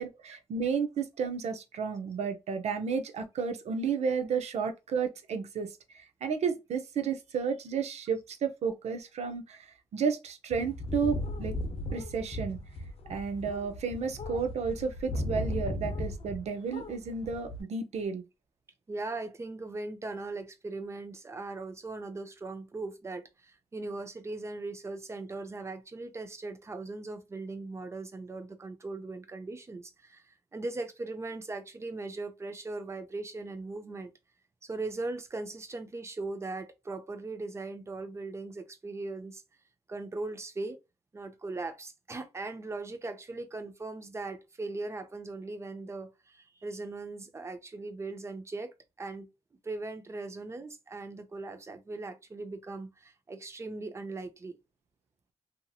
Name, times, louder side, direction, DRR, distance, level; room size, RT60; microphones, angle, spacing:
voice 1, 0.0-11.5 11.9-12.6 13.1-18.2, right 6 dB, 75° right, 0.6 m, -32 dB
sound 1, 10.5-16.4 16.7-17.6, left 1 dB, 60° left, 0.7 m, -36 dB
voice 2, 18.9-34.1 34.6-39.4 39.9-40.8 41.1-49.3 49.6-54.6, right 3 dB, 25° right, 0.5 m, -39 dB
2.8 x 2.7 x 2.3 m
wide cardioid pair, 125°, 11 cm